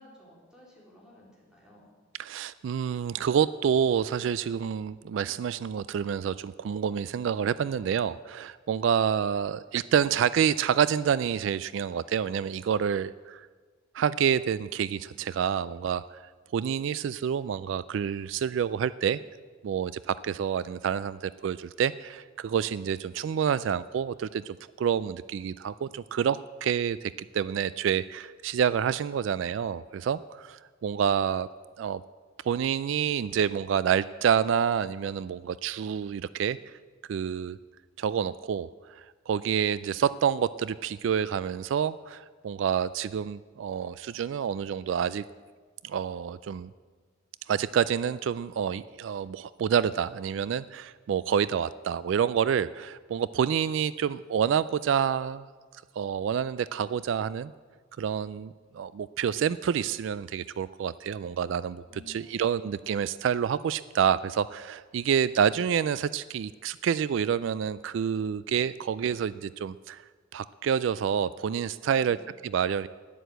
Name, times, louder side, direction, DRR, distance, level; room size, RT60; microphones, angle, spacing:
voice 1, 0.0-1.9 61.8-62.9 71.7-72.3, left 1 dB, 5° right, -5 dB, 4.1 m, -54 dB
voice 2, 2.2-13.5 13.9-16.2 16.5-19.2 19.6-31.5 31.8-32.0 32.4-36.8 37.1-37.6 38.0-45.2 45.8-46.7 47.5-55.4 56.0-57.5 58.0-70.0 70.3-72.2 72.4-72.9, right 8 dB, 70° right, 17 dB, 0.3 m, -28 dB
12.5 x 10.0 x 7.9 m, 1.5 s
head